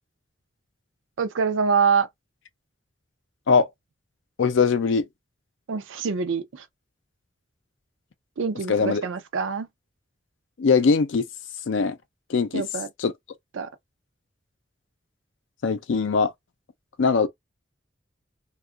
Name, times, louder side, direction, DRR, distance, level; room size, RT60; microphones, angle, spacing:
voice 1, 1.2-2.1 5.7-6.6 8.4-9.7 12.5-12.9 13.6-13.7, right 5 dB, 85° right, 0.4 m, -25 dB
voice 2, 4.4-5.1 8.7-9.0 10.6-11.3 11.7-12.0 12.3-12.6 13.0-13.1 15.6-16.3 17.0-17.3, left 5 dB, 80° left, 0.5 m, -21 dB
2.7 x 2.3 x 2.4 m
head